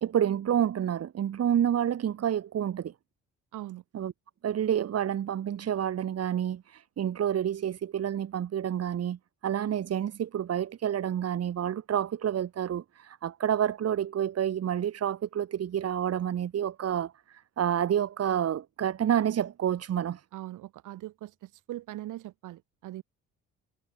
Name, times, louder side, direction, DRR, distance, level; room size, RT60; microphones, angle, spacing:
voice 1, 0.0-2.9 3.9-4.1 4.4-9.2 9.4-20.2, right 9 dB, 55° right, 1.5 m, -29 dB
voice 2, 3.5-3.8 20.3-23.0, right 15 dB, 85° right, 2.9 m, -41 dB
cardioid pair, 90°, 30 cm